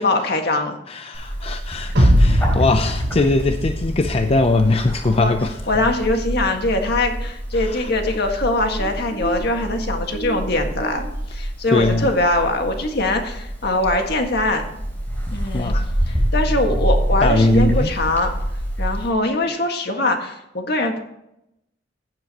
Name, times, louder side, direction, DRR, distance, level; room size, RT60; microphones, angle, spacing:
voice 1, 0.0-0.8 5.2-5.3 5.7-14.8 15.3-15.7 16.1-18.3 18.8-21.0, left 2 dB, 60° left, 4 dB, 1.7 m, -22 dB
voice 2, 0.9-5.6 7.5-7.9 11.7-12.1 15.5-16.2 17.2-17.9, left 2 dB, 30° left, 7 dB, 0.5 m, -21 dB
Bird, 1.1-19.1, right 1 dB, 10° left, 3.7 m, -27 dB
sound 1, 2.0-5.2, equal, 80° right, 3.6 m, -20 dB
15.5 x 7.6 x 2.9 m, 0.85 s
head